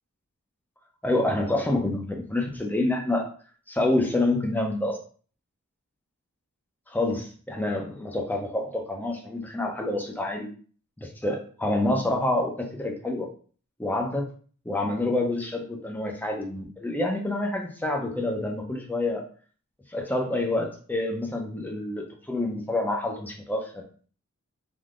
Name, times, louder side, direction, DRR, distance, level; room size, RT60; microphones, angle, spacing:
voice 1, 1.0-3.2 3.7-5.0 6.9-10.5 11.0-13.3 13.8-14.2 14.7-19.2 19.9-23.8, left 2 dB, 10° left, 1 dB, 0.6 m, -27 dB
3.5 x 2.7 x 2.4 m, 0.42 s
head